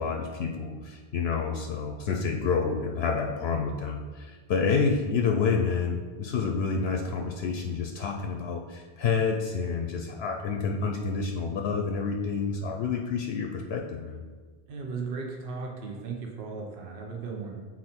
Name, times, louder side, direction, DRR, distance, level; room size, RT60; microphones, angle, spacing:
voice 1, 0.0-14.2, left 5 dB, 75° left, 3 dB, 0.8 m, -28 dB
voice 2, 14.7-17.7, right 4 dB, 60° right, 0 dB, 1.0 m, -36 dB
6.4 x 4.2 x 4.3 m, 1.5 s
omnidirectional pair, 1.1 m